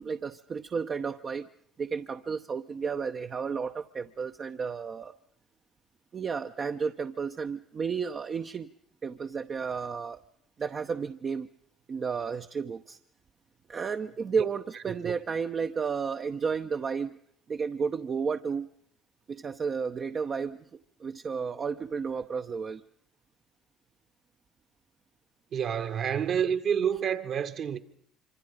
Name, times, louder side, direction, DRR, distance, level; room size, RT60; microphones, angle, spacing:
voice 1, 0.0-1.5 1.8-5.1 6.1-8.7 9.0-10.2 10.6-11.5 11.9-13.0 13.7-17.2 17.5-18.7 19.3-20.6 21.0-22.8, right 5 dB, 40° right, 0.9 m, -32 dB
voice 2, 25.5-27.8, right 8 dB, 55° right, 1.8 m, -28 dB
26.0 x 25.5 x 5.2 m
hypercardioid pair, 70°, 0 cm